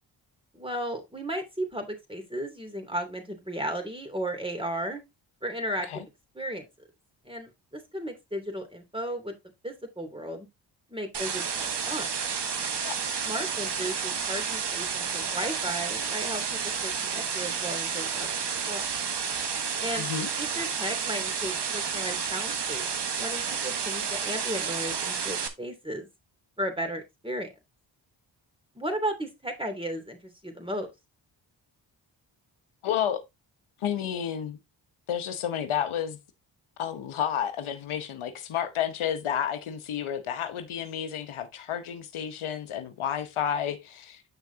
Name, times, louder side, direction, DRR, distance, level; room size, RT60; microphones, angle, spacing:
voice 1, 0.5-5.0 5.4-6.0 6.3-6.7 7.2-9.3 9.6-10.5 10.9-12.1 13.2-18.9 19.8-20.1 20.4-22.9 23.2-26.1 26.6-27.5 28.7-30.9, right 1 dB, 10° right, 2.8 m, -35 dB
sound 1, 11.1-25.5, right 6 dB, 55° right, 1.3 m, -31 dB
voice 2, 19.9-20.3 32.8-33.2 33.8-34.6 35.1-36.2 36.8-44.2, left 9 dB, 80° left, 1.0 m, -31 dB
8.0 x 6.0 x 2.8 m
cardioid pair, 50°, 49 cm